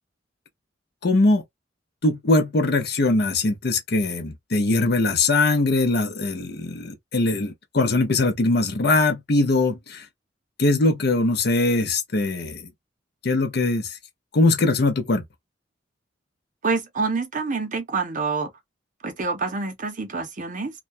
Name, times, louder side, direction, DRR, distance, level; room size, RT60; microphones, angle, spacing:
voice 1, 1.0-1.4 2.0-10.0 10.6-12.6 13.2-13.9 14.3-15.2, left 2 dB, 60° left, 0.7 m, -21 dB
voice 2, 16.6-18.5 19.0-20.7, right 4 dB, 45° right, 0.7 m, -27 dB
2.3 x 2.2 x 2.5 m
head